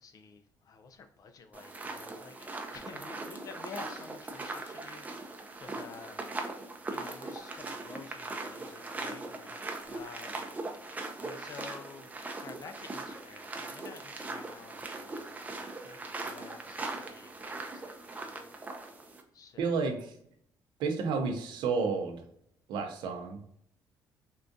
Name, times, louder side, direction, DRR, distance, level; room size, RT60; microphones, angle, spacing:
voice 1, 0.0-6.3 6.9-10.4 11.2-12.1 12.4-18.4 19.3-20.0, left 5 dB, 50° left, 7 dB, 0.5 m, -51 dB
sound 1, 1.5-19.2, right 2 dB, 20° right, 0.5 m, -40 dB
voice 2, 19.6-20.1 20.8-22.2 22.7-23.4, right 4 dB, 80° right, 5 dB, 0.6 m, -31 dB
3.6 x 2.4 x 2.6 m, 0.68 s
cardioid pair, 105°, 8 cm